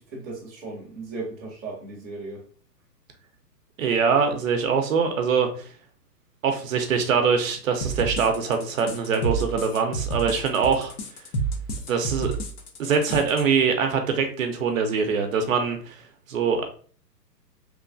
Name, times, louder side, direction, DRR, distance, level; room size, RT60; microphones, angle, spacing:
voice 1, 0.0-2.4, right 3 dB, 10° right, -12 dB, 0.4 m, -36 dB
voice 2, 3.8-5.7 6.4-10.9 11.9-12.3 12.8-16.0 16.3-16.6, right 6 dB, 55° right, 5 dB, 0.6 m, -23 dB
sound 1, 7.8-13.4, right 3 dB, 65° left, 0.8 m, -30 dB
3.1 x 2.2 x 2.5 m, 0.43 s
hypercardioid pair, 145°, 49 cm